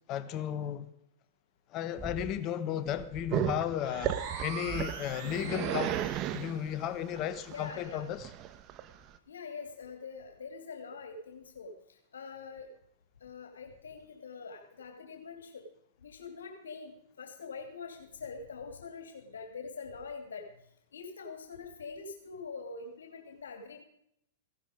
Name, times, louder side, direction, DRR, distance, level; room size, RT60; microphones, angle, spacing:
voice 1, 0.1-0.9 1.7-4.1 4.4-5.9 6.3-8.3, left 10 dB, 40° left, 1.2 m, -34 dB
sound 1, 1.9-2.4 2.8-3.4 4.0-4.6 5.1-5.5 6.2-6.5 7.2-7.6 8.5-8.6, right 3 dB, ahead, 1.5 m, -48 dB
Growling, 3.3-9.2, right 11 dB, 35° right, 1.1 m, -35 dB
sound 2, 3.8-6.5, right 6 dB, 50° right, 3.4 m, -43 dB
voice 2, 5.4-6.0 7.1-7.2 7.5-8.0 9.3-12.7 13.2-15.7 16.0-20.5 20.9-23.8, left 5 dB, 85° left, 2.6 m, -44 dB
16.0 x 11.5 x 5.1 m
hypercardioid pair, 120°, 0 cm